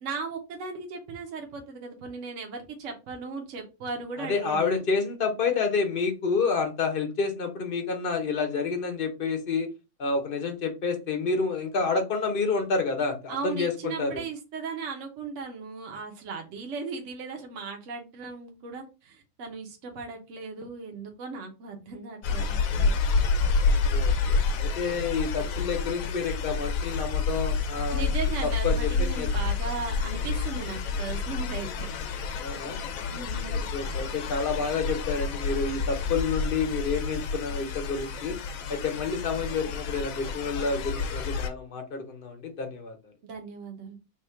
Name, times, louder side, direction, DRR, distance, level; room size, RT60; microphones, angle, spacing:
voice 1, 0.0-4.8 13.3-23.0 27.9-31.9 33.1-33.7 43.2-44.0, right 4 dB, 60° right, 2 dB, 1.1 m, -37 dB
voice 2, 4.2-9.7 10.0-14.2 23.6-28.1 28.6-28.9 29.1-29.3 32.4-32.8 33.5-38.4 38.7-43.0, left 4 dB, 45° left, 5 dB, 0.9 m, -29 dB
sound 1, 22.2-41.5, left 4 dB, 75° left, 1.0 m, -29 dB
3.5 x 2.4 x 4.3 m, 0.28 s
omnidirectional pair, 1.5 m